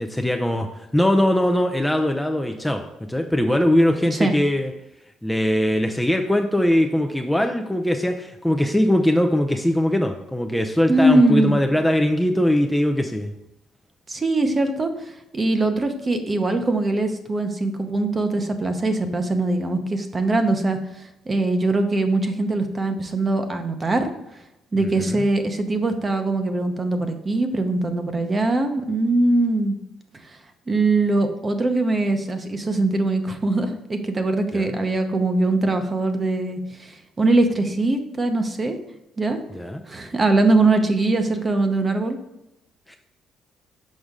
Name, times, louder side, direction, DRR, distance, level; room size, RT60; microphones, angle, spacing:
voice 1, 0.0-2.8 3.1-4.7 5.2-13.3 24.8-25.3 34.5-34.7 39.5-39.8 42.9-43.0, left 1 dB, 5° left, 4 dB, 0.5 m, -21 dB
voice 2, 10.9-11.5 14.1-24.1 24.7-29.8 30.2-30.4 30.7-38.8 39.2-39.4 39.9-42.2, right 2 dB, 30° right, 6 dB, 0.9 m, -22 dB
6.4 x 5.1 x 3.7 m, 0.88 s
cardioid pair, 95°, 0 cm